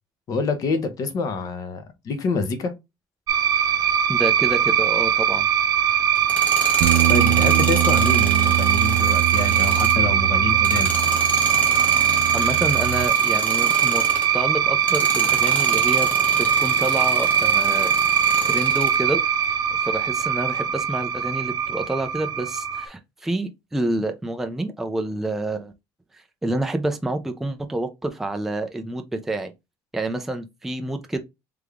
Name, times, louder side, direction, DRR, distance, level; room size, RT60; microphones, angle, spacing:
voice 1, 0.3-2.7 7.1-10.9, left 4 dB, 40° left, 0.9 m, -26 dB
sound 1, 3.3-22.9, right 8 dB, 40° right, 0.7 m, -21 dB
voice 2, 4.1-5.5 11.8-12.1 12.3-14.0 14.3-16.1 16.6-17.9 18.5-19.2 19.8-25.7 26.1-29.5 29.9-31.2, right 2 dB, 5° right, 0.4 m, -28 dB
Tools, 6.2-14.4 14.8-19.0, left 1 dB, 15° left, 1.1 m, -32 dB
Bass guitar, 6.8-13.1, right 15 dB, 85° right, 0.4 m, -25 dB
3.5 x 3.4 x 3.4 m
cardioid pair, 160°, 9 cm